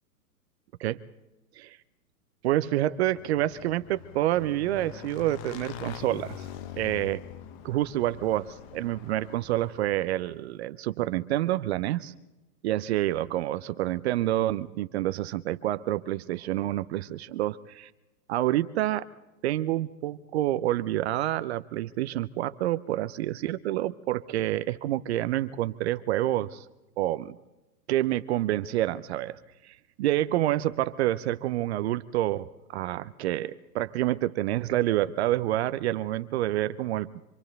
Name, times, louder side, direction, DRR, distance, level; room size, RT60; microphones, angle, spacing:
voice 1, 2.4-6.5 6.8-7.2 7.6-12.1 12.6-17.9 18.3-19.1 19.4-26.6 27.0-27.4 27.9-29.4 29.6-32.5 32.7-37.1, right 14 dB, 40° right, 14 dB, 0.7 m, -28 dB
Motorcycle / Engine, 2.9-10.3, left 9 dB, 35° left, 1.3 m, -44 dB
27.0 x 25.0 x 4.0 m, 1.0 s
hypercardioid pair, 115°, 50 cm